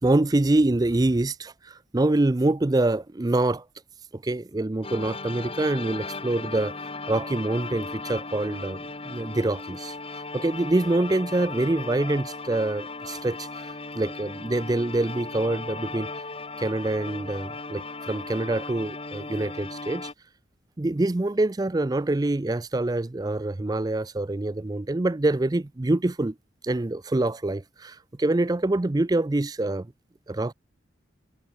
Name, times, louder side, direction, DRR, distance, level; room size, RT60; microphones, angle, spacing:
voice 1, 0.0-3.6 4.1-6.7 7.1-8.8 9.1-9.9 10.3-16.1 16.6-20.1 20.8-26.3 26.6-29.9 30.3-30.5, right 2 dB, 20° right, 0.4 m, -25 dB
sound 1, 4.8-20.1, left 3 dB, 30° left, 3.0 m, -37 dB
head